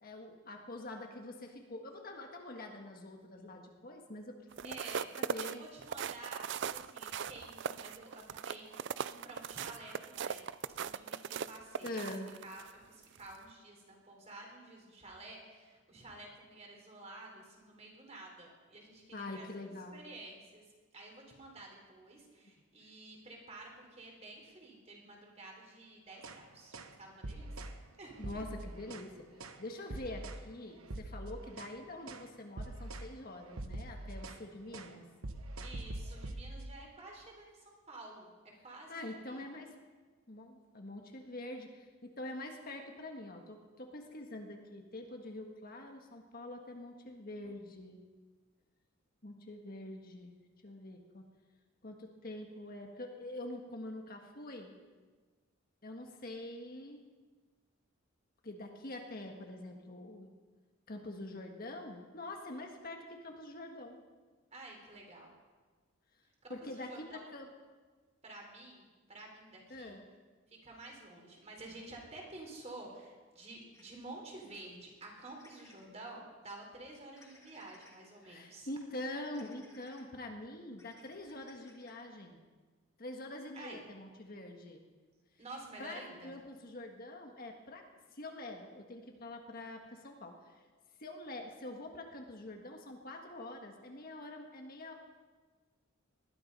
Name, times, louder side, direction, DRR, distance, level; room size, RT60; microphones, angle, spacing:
voice 1, 0.0-4.8 5.2-5.7 11.8-12.3 19.1-20.0 28.2-29.3 29.6-35.0 38.9-39.7 40.3-48.0 49.2-50.4 50.6-51.3 51.8-54.7 55.8-57.0 58.4-60.3 60.9-64.0 66.5-67.5 69.7-70.0 78.2-82.4 83.0-84.8 85.8-87.8 88.1-90.6 91.0-94.9, left 1 dB, 45° left, 3 dB, 1.6 m, -45 dB
sound 1, 4.5-12.7 13.2-13.4, right 7 dB, 55° right, 0.4 m, -39 dB
voice 2, 4.6-5.1 5.4-10.5 10.8-12.0 12.4-20.6 20.9-28.1 35.6-38.3 38.6-39.4 64.5-65.3 66.4-67.3 68.2-70.0 70.5-78.7 83.5-83.8 85.4-86.3, right 2 dB, 30° right, 0 dB, 3.6 m, -51 dB
sound 2, 26.1-26.4 26.7-27.0 27.2-27.8 28.2-29.1 29.4-29.6 29.9-30.5 30.8-31.8 32.1-32.3 32.6-33.1 33.4-34.5 34.7-35.0 35.2-36.7, right 1 dB, 85° right, 1.1 m, -44 dB
sound 3, 73.7-73.8 75.4-75.9 77.2-78.0 79.3-80.0 80.7-82.0, left 2 dB, 15° left, 2.1 m, -62 dB
20.0 x 12.5 x 5.5 m, 1.4 s
head